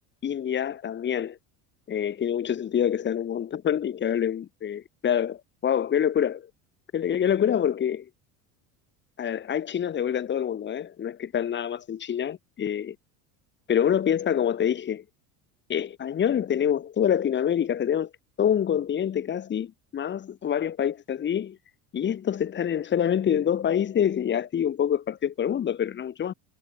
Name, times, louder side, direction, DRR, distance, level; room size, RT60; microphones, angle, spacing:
voice 1, 0.2-1.4 1.9-6.5 6.9-8.1 9.2-13.0 13.7-15.0 15.7-18.1 18.4-21.6 21.9-26.3, left 9 dB, 30° left, 5.5 m, -26 dB
cardioid pair, 160°, 39 cm